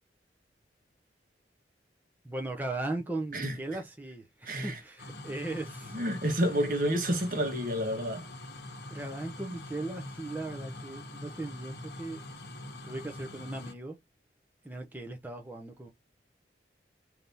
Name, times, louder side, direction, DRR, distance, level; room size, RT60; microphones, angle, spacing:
voice 1, 2.2-6.0 8.9-12.2 12.8-14.0 14.6-15.9, right 2 dB, 10° right, 0.6 m, -38 dB
voice 2, 4.5-4.8 5.9-8.3, equal, 50° right, 1.2 m, -29 dB
sound 1, 5.0-13.7, left 1 dB, 65° left, 1.0 m, -44 dB
3.4 x 2.8 x 3.9 m
head